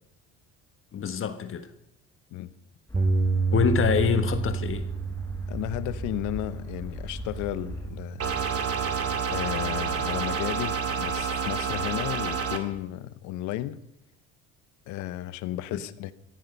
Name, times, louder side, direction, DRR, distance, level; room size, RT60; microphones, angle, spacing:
voice 1, 0.9-1.7 3.5-4.9, left 7 dB, 45° left, 1.4 m, -25 dB
sound 1, 2.9-7.9, left 1 dB, 5° left, 5.5 m, -39 dB
Bass guitar, 2.9-9.2, right 4 dB, 25° right, 2.5 m, -30 dB
voice 2, 5.5-8.3 9.3-13.8 14.9-16.1, left 14 dB, 75° left, 1.1 m, -33 dB
sound 2, 8.2-12.6, right 6 dB, 50° right, 2.3 m, -28 dB
16.5 x 14.0 x 5.4 m
supercardioid pair, 90°, 31 cm